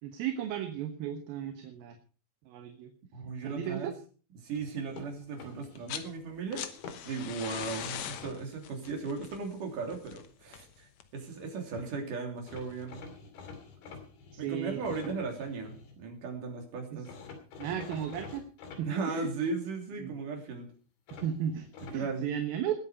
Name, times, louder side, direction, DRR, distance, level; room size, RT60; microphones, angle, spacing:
voice 1, 0.0-2.0 2.5-2.9 3.4-3.9 14.3-14.8 16.9-17.0 17.6-18.5 18.8-19.3 20.0-20.1 21.1-21.7 21.9-22.8, right 9 dB, 80° right, 6 dB, 3.0 m, -35 dB
voice 2, 3.1-3.9 4.4-6.7 7.0-10.9 11.1-13.0 14.4-17.1 18.8-20.7 21.8-22.3, right 4 dB, 60° right, 3 dB, 4.6 m, -36 dB
sound 1, 4.6-6.0 6.5-7.3 7.8-8.4 11.5-11.6 11.7-11.9 12.5-16.0 17.1-18.8 21.1-22.0, left 5 dB, 85° left, 4.5 m, -48 dB
sound 2, 5.6-6.1 6.4-11.2 12.5-12.6, left 10 dB, 65° left, 1.9 m, -41 dB
20.5 x 8.6 x 5.0 m, 0.39 s
omnidirectional pair, 4.2 m